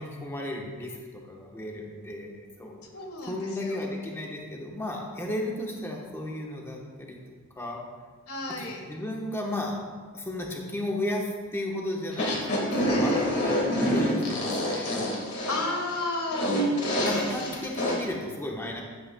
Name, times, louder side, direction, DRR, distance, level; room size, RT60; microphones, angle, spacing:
voice 1, 0.0-2.8 3.2-7.2 7.6-7.8 8.5-9.8 10.1-14.9 16.8-18.8, left 1 dB, 10° left, -1 dB, 1.0 m, -34 dB
voice 2, 2.9-3.8 8.3-8.8 12.9-13.3 15.5-16.5, left 2 dB, 85° left, 1 dB, 1.6 m, -32 dB
sound 1, 12.1-18.0, equal, 50° left, 1.9 m, -27 dB
11.0 x 8.5 x 2.3 m, 1.5 s
head